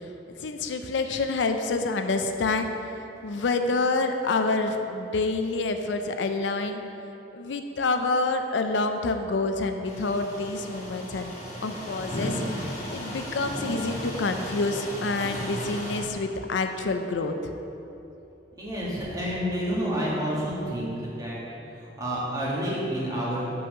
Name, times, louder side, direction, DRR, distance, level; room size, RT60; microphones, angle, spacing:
voice 1, 0.4-2.7 3.2-6.8 7.3-11.3 11.6-12.4 12.9-17.3, left 3 dB, 80° left, 6 dB, 0.5 m, -27 dB
sound 1, 9.8-16.0, equal, 40° left, 1.6 m, -35 dB
voice 2, 18.6-21.4 21.7-23.5, equal, 20° right, -7 dB, 1.7 m, -29 dB
5.6 x 5.6 x 6.3 m, 2.9 s
head